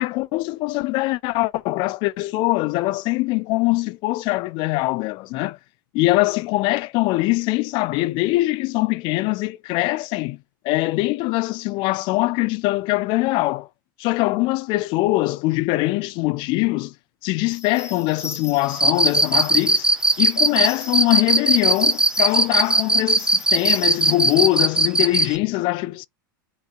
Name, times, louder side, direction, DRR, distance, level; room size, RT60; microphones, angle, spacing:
voice 1, 0.0-5.6 5.9-10.4 10.6-13.7 14.0-16.9 17.2-19.9 20.2-26.1, left 20 dB, 45° left, 0.4 m, -22 dB
sound 1, 17.5-24.5, left 4 dB, 25° left, 2.5 m, -40 dB
Cricket, 18.7-25.3, right 2 dB, 5° right, 0.7 m, -18 dB
5.1 x 4.1 x 2.3 m
hypercardioid pair, 100°, 11 cm